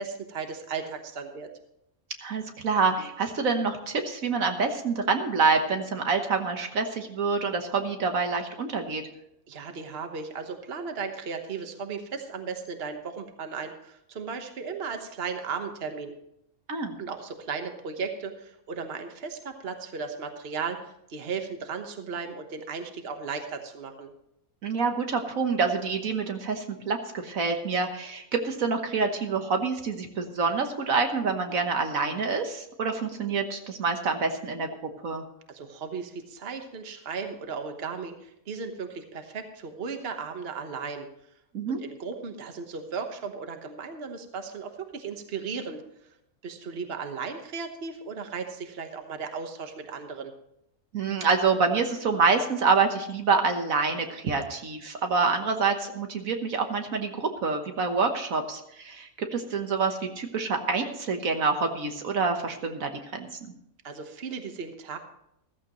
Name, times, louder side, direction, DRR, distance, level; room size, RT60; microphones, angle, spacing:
voice 1, 0.0-1.5 9.5-16.1 17.0-24.1 35.5-41.1 41.8-45.8 46.4-50.3 63.8-65.0, right 5 dB, 45° right, 6 dB, 1.4 m, -36 dB
voice 2, 2.2-9.0 16.7-17.0 24.6-34.7 35.0-35.2 41.5-41.8 50.9-63.3, right 4 dB, 70° right, 5 dB, 1.6 m, -27 dB
14.5 x 14.0 x 3.1 m, 0.80 s
omnidirectional pair, 1.5 m